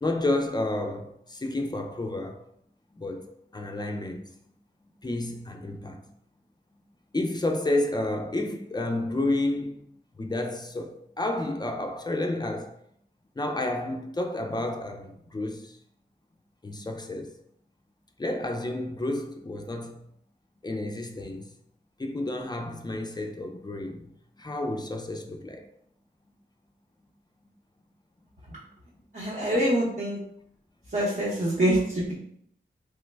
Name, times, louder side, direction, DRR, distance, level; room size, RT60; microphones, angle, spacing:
voice 1, 0.0-2.4 2.9-4.3 5.0-6.1 7.1-9.8 10.2-12.8 13.4-15.8 16.6-17.4 18.2-20.0 20.6-21.5 22.0-24.1 24.4-25.7 28.5-28.7 30.9-31.1, left 2 dB, 20° left, 0.3 m, -30 dB
voice 2, 29.1-30.2 30.9-32.1, right 1 dB, 50° right, 0.8 m, -25 dB
3.2 x 2.1 x 3.2 m
wide cardioid pair, 75°, 19 cm